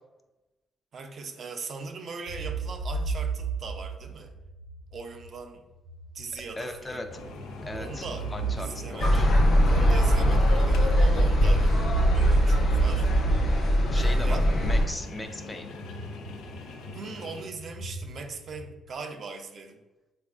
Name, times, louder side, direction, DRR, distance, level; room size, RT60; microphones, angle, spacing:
voice 1, 0.9-4.3 4.9-5.7 6.1-7.1 7.7-8.3 8.6-9.4 9.7-13.1 13.9-14.5 16.9-19.8, right 4 dB, 55° right, 5 dB, 0.4 m, -40 dB
sound 1, 2.3-5.3 5.8-18.9, right 6 dB, 75° right, 0.8 m, -33 dB
voice 2, 6.6-7.1 7.6-9.3 13.9-15.7, left 2 dB, 20° left, 6 dB, 0.4 m, -38 dB
sound 2, 7.1-17.4, left 3 dB, 90° left, 0.4 m, -43 dB
sound 3, 9.0-14.9, equal, 60° left, 0.7 m, -21 dB
4.0 x 2.4 x 2.3 m, 1.0 s
cardioid pair, 90°, 0 cm